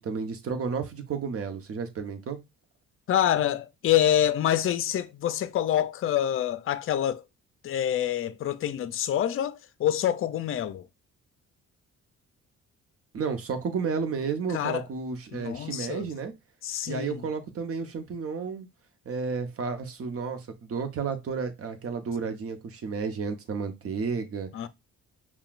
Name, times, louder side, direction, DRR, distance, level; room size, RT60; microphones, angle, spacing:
voice 1, 0.0-2.4 13.1-16.3 16.9-18.7 19.0-24.5, right 5 dB, 50° right, 0.9 m, -32 dB
voice 2, 3.1-7.2 7.6-10.8 14.5-14.8 15.3-16.1 16.6-17.2 24.5-24.7, left 11 dB, 45° left, 0.5 m, -26 dB
5.7 x 2.3 x 2.4 m
cardioid pair, 90°, 30 cm